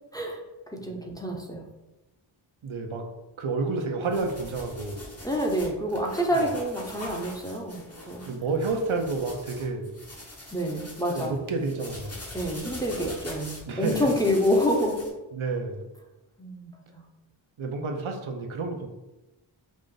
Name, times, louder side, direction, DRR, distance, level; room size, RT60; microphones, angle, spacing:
voice 1, 0.8-1.7 5.2-8.3 10.5-11.4 12.3-15.0 16.4-17.0, equal, 10° left, 0 dB, 0.8 m, -27 dB
voice 2, 2.6-3.1 3.4-5.1 6.3-6.5 8.3-9.9 11.1-12.2 13.7-14.1 15.3-15.9 17.6-18.9, right 3 dB, 80° right, 3 dB, 0.7 m, -30 dB
sound 1, 4.0-15.1, left 1 dB, 30° left, 1.1 m, -43 dB
5.1 x 2.5 x 3.8 m, 1.0 s
wide cardioid pair, 60°, 48 cm